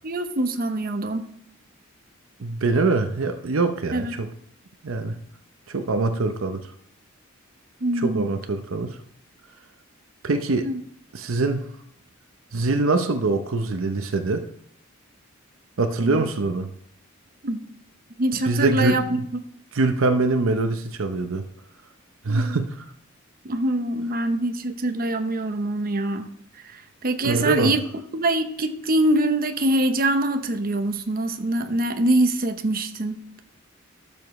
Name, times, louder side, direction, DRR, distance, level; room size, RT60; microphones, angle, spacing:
voice 1, 0.0-1.2 3.9-4.1 7.8-8.3 10.6-10.8 16.0-16.3 17.4-17.7 18.2-19.0 22.3-22.6 23.4-26.3 26.6-27.8 28.1-33.2, right 1 dB, 45° right, 7 dB, 0.8 m, -24 dB
voice 2, 2.4-4.3 4.8-5.1 5.7-6.6 8.0-9.0 10.2-10.7 11.1-11.7 12.5-14.5 15.8-16.7 18.4-19.2 19.7-21.4 22.2-22.8 27.2-27.7, right 3 dB, 75° right, 8 dB, 0.7 m, -23 dB
12.5 x 7.2 x 3.1 m, 0.70 s
head